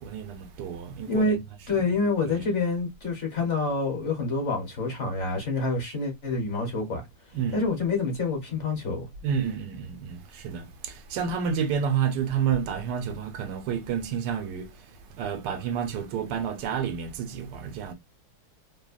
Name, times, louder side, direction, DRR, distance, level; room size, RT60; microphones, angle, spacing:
voice 1, 0.0-1.3 1.8-1.9 2.2-2.5 7.3-7.6 9.2-17.9, right 7 dB, 90° right, 1.2 m, -30 dB
voice 2, 1.1-1.4 1.7-7.0 7.5-9.1, left 3 dB, 50° left, 1.2 m, -27 dB
3.0 x 2.1 x 2.3 m
omnidirectional pair, 1.8 m